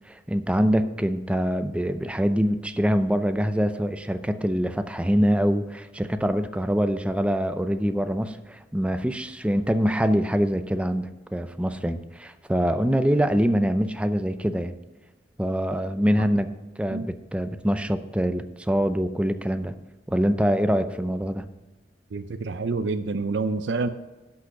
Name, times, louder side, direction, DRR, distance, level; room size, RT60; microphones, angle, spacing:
voice 1, 0.1-14.7 15.4-16.5 16.8-19.7 20.1-21.4, equal, 5° right, 10 dB, 0.5 m, -24 dB
voice 2, 22.1-23.9, right 3 dB, 80° right, 9 dB, 0.6 m, -27 dB
11.5 x 6.3 x 5.8 m, 1.1 s
head